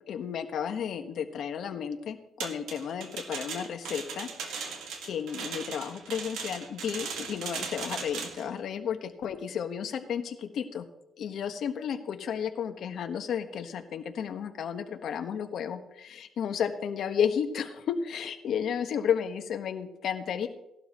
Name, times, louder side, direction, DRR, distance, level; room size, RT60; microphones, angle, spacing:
voice 1, 0.1-10.8 11.2-20.5, left 8 dB, 70° left, 6 dB, 1.4 m, -33 dB
sound 1, 2.4-8.5, right 5 dB, 85° right, 1.9 m, -38 dB
17.5 x 12.0 x 3.1 m, 0.87 s
cardioid pair, 90°, 0 cm